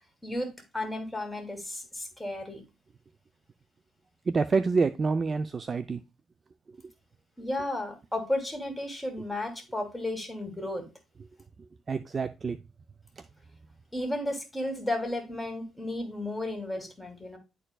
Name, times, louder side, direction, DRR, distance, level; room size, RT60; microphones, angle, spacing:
voice 1, 0.2-2.6 7.4-10.9 13.9-17.4, left 1 dB, 5° left, 2.7 m, -33 dB
voice 2, 4.3-6.0 11.6-12.6 13.2-13.3, right 4 dB, 40° right, 0.5 m, -28 dB
11.0 x 4.5 x 2.3 m
cardioid pair, 90°, 0 cm